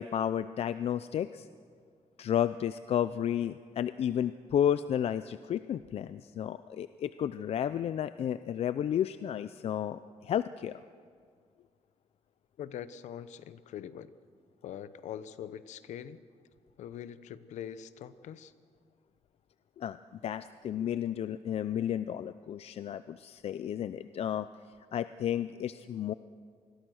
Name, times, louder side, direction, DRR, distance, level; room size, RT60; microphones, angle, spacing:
voice 1, 0.0-1.5 2.2-10.8 19.8-20.0 20.2-24.5 24.9-26.1, left 10 dB, 60° left, 13 dB, 0.5 m, -32 dB
voice 2, 12.6-14.1 14.6-16.2 16.8-18.5, left 9 dB, 90° left, 14 dB, 0.9 m, -43 dB
26.5 x 21.0 x 6.4 m, 2.1 s
cardioid pair, 125°, 12 cm